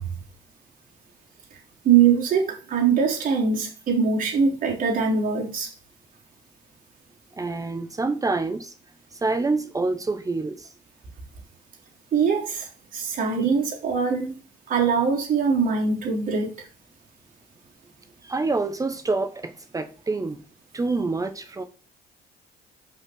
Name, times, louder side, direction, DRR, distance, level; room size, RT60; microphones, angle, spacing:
voice 1, 1.8-5.7 12.1-14.3 14.7-16.5, right 6 dB, 55° right, 3.5 m, -22 dB
voice 2, 7.4-8.7 9.1-10.7 18.2-20.4 20.7-21.6, right 3 dB, 20° right, 0.9 m, -27 dB
5.7 x 5.6 x 6.3 m
cardioid pair, 110°, 17 cm